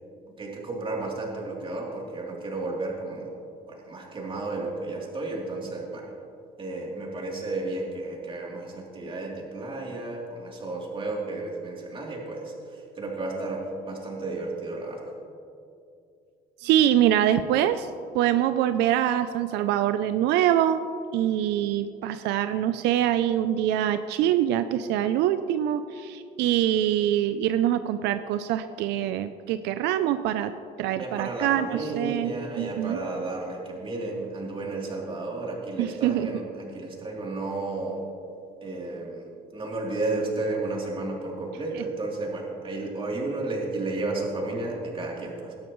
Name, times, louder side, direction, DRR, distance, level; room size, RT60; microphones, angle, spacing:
voice 1, 0.4-3.3 3.7-6.1 6.6-15.0 30.9-38.0 38.6-45.5, right 2 dB, 30° right, -2 dB, 3.1 m, -32 dB
voice 2, 16.6-17.9 18.1-20.8 21.1-30.5 30.8-33.0 35.8-36.3 41.8-41.9, right 11 dB, 90° right, 11 dB, 0.5 m, -24 dB
17.5 x 12.5 x 3.1 m, 2.5 s
cardioid pair, 110°, 17 cm